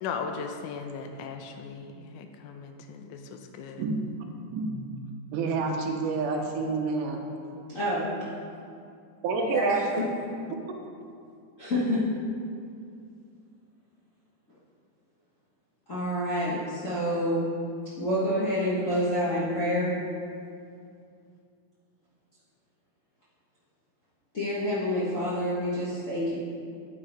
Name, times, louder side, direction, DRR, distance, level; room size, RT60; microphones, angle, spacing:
voice 1, 0.0-3.8 7.2-7.8, left 5 dB, 85° left, 5 dB, 2.1 m, -38 dB
voice 2, 4.2-4.9 5.3-7.2 9.2-10.0, right 4 dB, 85° right, 3 dB, 2.4 m, -29 dB
voice 3, 7.7-8.0 9.4-10.1 11.6-12.0 15.9-17.5 18.0-19.9 24.3-26.3, equal, 50° left, -10 dB, 0.9 m, -27 dB
8.9 x 8.4 x 3.4 m, 2.4 s
omnidirectional pair, 3.5 m